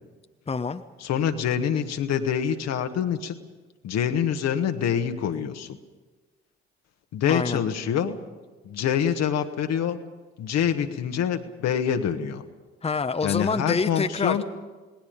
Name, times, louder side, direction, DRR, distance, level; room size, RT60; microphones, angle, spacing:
voice 1, 0.5-0.8 7.3-7.6 12.8-14.4, left 4 dB, 20° left, 8 dB, 1.0 m, -26 dB
voice 2, 1.0-3.3 3.8-5.8 7.1-8.2 8.6-10.0 10.4-12.4 13.2-14.4, left 8 dB, 55° left, 7 dB, 1.5 m, -25 dB
29.0 x 19.5 x 5.4 m, 1.3 s
figure-of-eight pair, 40°, 31 cm